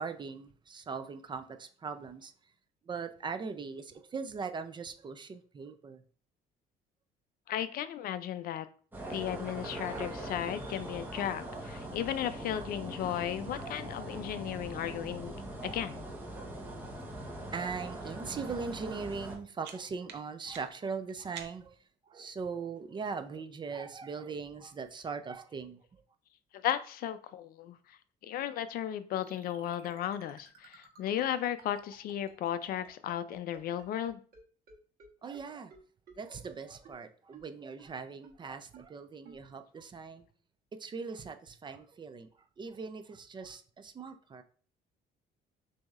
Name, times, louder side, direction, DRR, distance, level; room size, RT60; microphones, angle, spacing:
voice 1, 0.0-2.3 2.8-6.0 17.1-21.8 22.1-26.0 35.2-35.7 36.2-40.3 40.8-42.3 42.6-44.4, right 5 dB, 25° right, 9 dB, 0.4 m, -40 dB
voice 2, 7.5-8.7 9.1-15.3 15.6-16.0 26.5-28.0 28.2-34.2, left 11 dB, 60° left, 13 dB, 0.4 m, -35 dB
sound 1, 8.9-19.4, right 1 dB, 10° right, 1.0 m, -41 dB
sound 2, 19.2-21.9, right 8 dB, 85° right, 0.6 m, -51 dB
sound 3, 29.2-34.4 34.7-34.8 35.0-35.1 35.3-35.4 35.7-35.8 36.1-36.2 36.4-36.5 36.8-36.9 37.3-37.4 37.8-37.9 38.2-38.3 38.7-38.8 39.2-39.4, right 6 dB, 60° right, 1.2 m, -53 dB
6.1 x 2.7 x 2.4 m, 0.43 s
cardioid pair, 110°, 17 cm